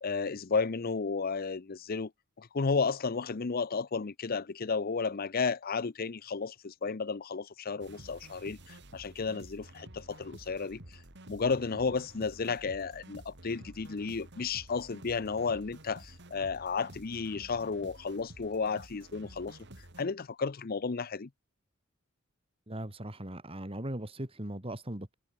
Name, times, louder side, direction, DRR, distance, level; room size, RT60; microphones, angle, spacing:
voice 1, 0.0-2.1 2.4-10.8 11.3-19.6 20.0-21.3, left 4 dB, 45° left, 0.6 m, -33 dB
sound 1, 7.8-20.0, right 1 dB, 55° right, 3.2 m, -51 dB
voice 2, 22.7-25.1, right 1 dB, 25° right, 2.5 m, -39 dB
head